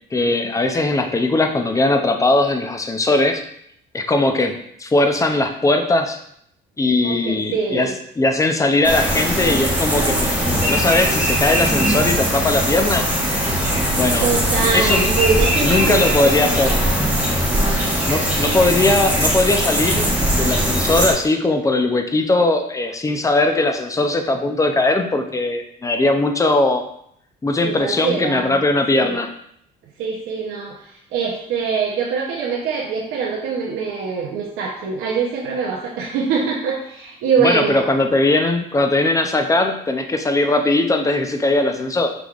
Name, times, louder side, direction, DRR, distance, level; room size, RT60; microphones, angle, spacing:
voice 1, 0.1-3.4 3.9-6.2 6.8-13.1 13.9-14.2 14.7-15.1 15.6-16.8 18.1-26.9 27.4-29.3 37.4-42.1, left 2 dB, 15° left, 5 dB, 0.5 m, -19 dB
voice 2, 7.0-7.9 14.2-16.5 18.4-18.6 27.6-28.6 28.9-29.2 30.0-37.9, right 5 dB, 85° right, -3 dB, 0.7 m, -23 dB
sound 1, 8.8-21.1, equal, 10° right, 1.2 m, -20 dB
5.9 x 3.4 x 2.4 m, 0.70 s
cardioid pair, 105°, 20 cm